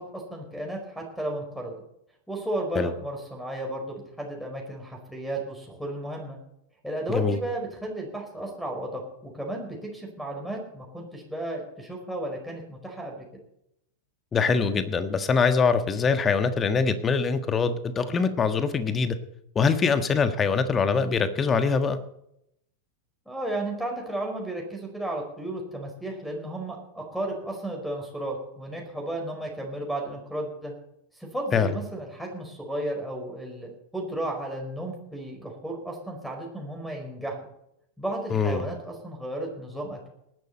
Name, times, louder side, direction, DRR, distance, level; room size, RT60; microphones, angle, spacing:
voice 1, 0.1-1.8 2.3-6.4 6.8-13.2 23.2-30.7 31.2-37.3 38.0-40.1, right 1 dB, ahead, 2 dB, 4.9 m, -34 dB
voice 2, 14.3-19.2 19.5-22.0 31.5-31.8 38.3-38.6, left 5 dB, 20° left, 10 dB, 1.4 m, -23 dB
19.5 x 11.5 x 4.2 m, 0.77 s
figure-of-eight pair, 90°, 0 cm